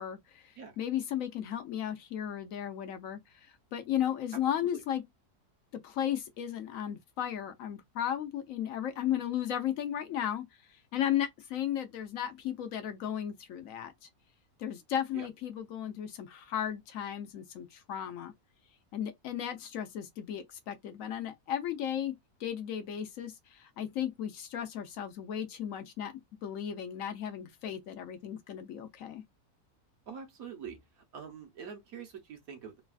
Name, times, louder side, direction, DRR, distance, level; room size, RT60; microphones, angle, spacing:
voice 1, 0.0-5.0 5.8-10.4 10.9-14.1 14.6-18.3 18.9-22.1 22.4-26.1 26.4-29.2, left 10 dB, 70° left, 0.9 m, -35 dB
voice 2, 30.1-30.8 31.1-32.8, right 7 dB, 70° right, 1.2 m, -44 dB
3.2 x 2.3 x 2.3 m
omnidirectional pair, 1.6 m